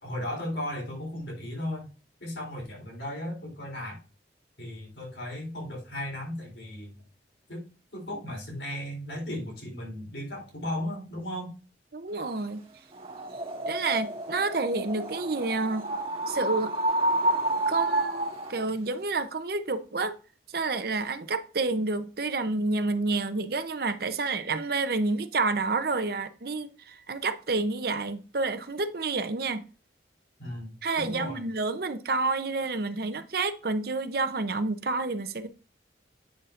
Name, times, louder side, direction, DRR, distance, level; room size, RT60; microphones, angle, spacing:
voice 1, 0.0-1.9 2.2-4.0 4.6-7.0 7.5-7.7 7.9-11.6 30.4-30.7 31.0-31.4, left 1 dB, 70° left, 3.8 m, -36 dB
voice 2, 11.9-12.6 13.7-15.8 16.3-16.7 17.7-20.1 20.5-29.6 30.8-35.5, right 3 dB, 55° right, 0.7 m, -29 dB
sound 1, 12.9-18.7, right 1 dB, 30° right, 1.8 m, -29 dB
9.1 x 6.7 x 2.6 m
head